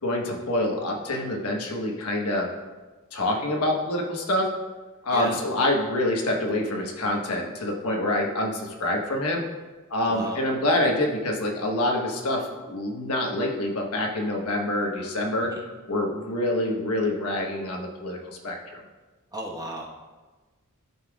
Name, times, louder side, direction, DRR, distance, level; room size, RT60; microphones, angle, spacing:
voice 1, 0.0-2.5 3.1-4.5 5.0-9.4 9.9-15.5 15.9-18.8, left 1 dB, 85° left, 0 dB, 1.2 m, -26 dB
voice 2, 10.0-10.4 15.4-15.6 19.3-19.9, right 1 dB, 15° right, -2 dB, 1.2 m, -34 dB
13.0 x 5.7 x 2.4 m, 1.3 s
head